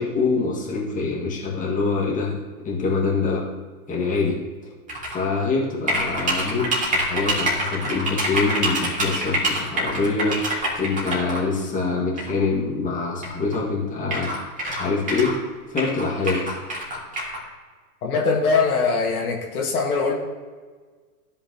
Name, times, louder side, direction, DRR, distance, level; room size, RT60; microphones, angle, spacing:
voice 1, 0.0-2.4 2.6-3.4 3.9-4.4 5.0-14.4 14.7-15.3 15.7-16.5, left 4 dB, 15° left, -3 dB, 1.8 m, -25 dB
sound 1, 4.9-5.2 5.9-11.4 12.2-12.3 13.2-13.3 13.5-13.6 14.1-15.4 15.8-17.4, right 1 dB, 15° right, 2.3 m, -25 dB
voice 2, 18.0-20.1, left 4 dB, 70° left, -1 dB, 1.9 m, -22 dB
13.5 x 5.4 x 2.9 m, 1.5 s
hypercardioid pair, 105°, 46 cm